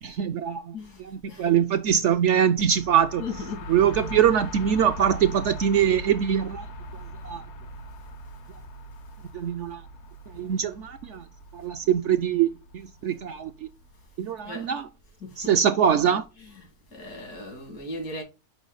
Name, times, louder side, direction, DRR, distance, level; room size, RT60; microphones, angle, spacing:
voice 1, 0.0-3.2 3.7-6.7 7.2-7.4 9.3-9.8 10.3-11.2 11.5-13.7 14.2-14.9 15.4-16.3, right 9 dB, 65° right, 0.7 m, -23 dB
voice 2, 0.7-1.5 3.2-3.7 14.4-14.7 15.2-15.6 16.9-18.2, left 2 dB, 85° left, 2.6 m, -37 dB
sound 1, 2.6-14.2, left 1 dB, 60° left, 0.8 m, -41 dB
6.2 x 4.8 x 3.8 m
omnidirectional pair, 1.6 m